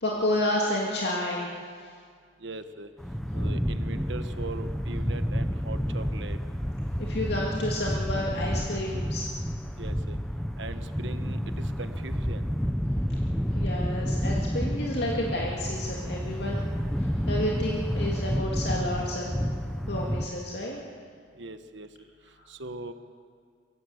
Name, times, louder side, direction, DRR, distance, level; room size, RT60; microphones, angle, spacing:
voice 1, 0.0-1.6 7.0-9.3 13.5-16.6 17.0-19.3 19.9-20.8, left 1 dB, 65° left, -3 dB, 2.5 m, -30 dB
voice 2, 2.4-2.9 3.3-6.4 9.8-10.2 10.6-12.4 21.4-21.9 22.5-22.9, right 2 dB, 80° right, 9 dB, 1.2 m, -40 dB
sound 1, 3.0-20.3, equal, 5° left, 0.8 m, -30 dB
24.5 x 16.5 x 8.0 m, 2.1 s
head